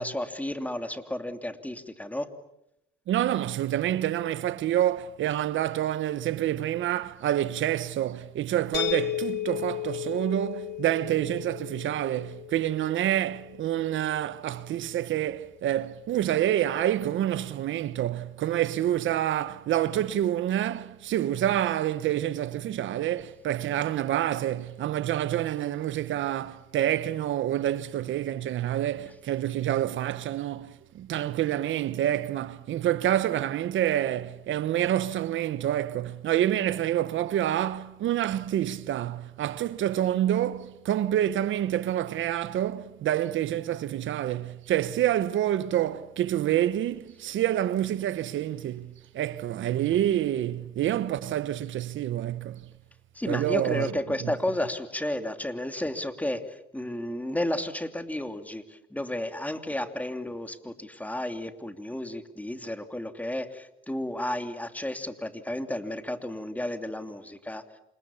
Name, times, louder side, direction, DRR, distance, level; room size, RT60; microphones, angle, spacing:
voice 1, 0.0-2.3 53.1-67.6, left 1 dB, 5° left, 2.9 m, -32 dB
voice 2, 3.1-52.7 53.3-53.9 54.2-54.3, right 12 dB, 75° right, 1.1 m, -27 dB
sound 1, 8.7-14.5, left 14 dB, 60° left, 3.7 m, -35 dB
29.0 x 26.5 x 7.2 m
cardioid pair, 90°, 20 cm